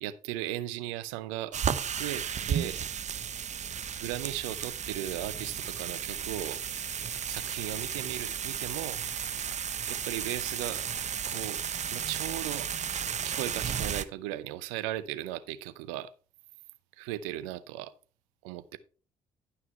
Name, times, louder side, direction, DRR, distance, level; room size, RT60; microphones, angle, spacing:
voice 1, 0.0-2.9 4.0-6.6 7.3-9.0 9.9-10.8 11.3-11.6 11.9-12.7 13.2-16.1 17.0-17.9 18.4-18.8, right 14 dB, 80° right, 0.7 m, -37 dB
sound 1, 1.5-14.0, right 8 dB, 45° right, 0.8 m, -34 dB
11.5 x 5.7 x 4.6 m
hypercardioid pair, 50°, 16 cm